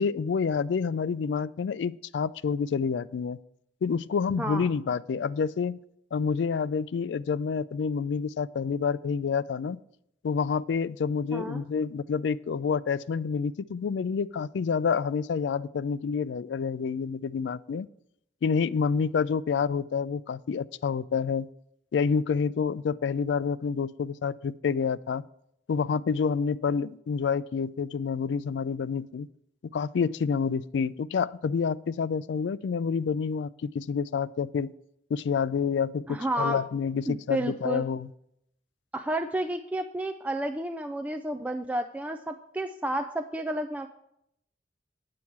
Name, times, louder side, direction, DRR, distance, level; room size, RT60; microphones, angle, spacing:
voice 1, 0.0-3.4 3.8-5.8 6.1-9.8 10.2-17.9 18.4-21.5 21.9-25.2 25.7-29.3 29.7-34.7 35.1-38.1, left 6 dB, 85° left, 18 dB, 0.3 m, -28 dB
voice 2, 4.4-4.7 11.3-11.6 36.1-36.6 37.1-37.8 38.9-43.9, right 1 dB, 10° right, 6 dB, 0.3 m, -31 dB
8.8 x 8.5 x 4.6 m, 0.76 s
head